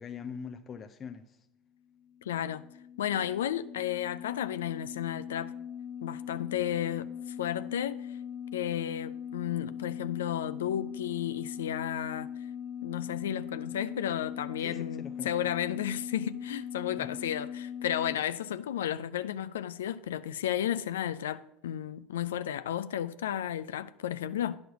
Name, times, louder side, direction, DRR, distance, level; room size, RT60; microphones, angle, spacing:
voice 1, 0.0-1.5 14.6-15.5 17.0-17.1, left 6 dB, 35° left, 0.5 m, -43 dB
sound 1, 2.0-18.2, left 8 dB, 55° left, 0.8 m, -40 dB
voice 2, 2.3-2.7 3.0-5.5 6.0-8.0 8.5-12.3 12.8-24.6, left 10 dB, 80° left, 0.3 m, -33 dB
9.3 x 6.4 x 4.7 m
hypercardioid pair, 80°, 0 cm